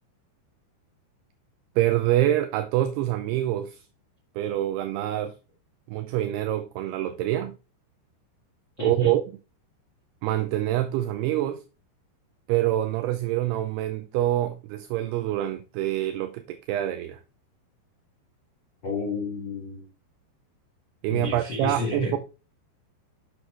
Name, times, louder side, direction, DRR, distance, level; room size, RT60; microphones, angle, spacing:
voice 1, 1.8-3.8 4.4-5.3 5.9-7.5 8.8-9.2 10.2-11.6 12.5-17.2 21.0-22.2, right 13 dB, 80° right, 2.4 m, -26 dB
voice 2, 8.8-9.2 18.8-19.9 21.1-22.2, left 4 dB, 85° left, 1.0 m, -31 dB
8.5 x 6.2 x 3.1 m
omnidirectional pair, 5.1 m